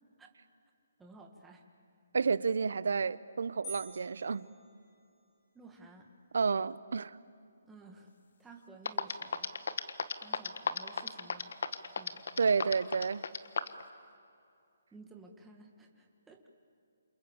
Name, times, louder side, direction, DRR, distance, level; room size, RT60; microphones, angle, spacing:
voice 1, 1.0-1.6 5.5-6.1 7.6-8.1 8.4-9.5 10.2-11.5 12.0-12.2 14.9-16.5, right 3 dB, 5° right, 1 dB, 1.7 m, -54 dB
voice 2, 2.1-4.5 6.3-7.2 12.4-13.2, right 5 dB, 70° right, 18 dB, 0.8 m, -30 dB
sound 1, 3.6-5.4, right 2 dB, 10° left, 5.9 m, -49 dB
sound 2, 8.5-8.6 8.9-13.8, left 5 dB, 60° left, 1.5 m, -33 dB
29.0 x 28.0 x 7.2 m, 2.5 s
hypercardioid pair, 170°, 0 cm